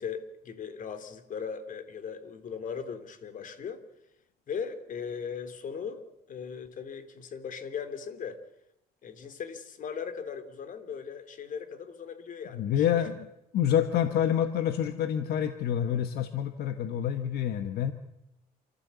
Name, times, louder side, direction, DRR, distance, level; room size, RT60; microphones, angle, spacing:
voice 1, 0.0-3.8 4.5-8.4 9.0-12.8, left 6 dB, 50° left, 10 dB, 3.0 m, -38 dB
voice 2, 12.5-13.3 13.5-17.9, left 9 dB, 70° left, 9 dB, 1.5 m, -27 dB
28.0 x 14.5 x 8.3 m, 0.85 s
cardioid pair, 110°, 17 cm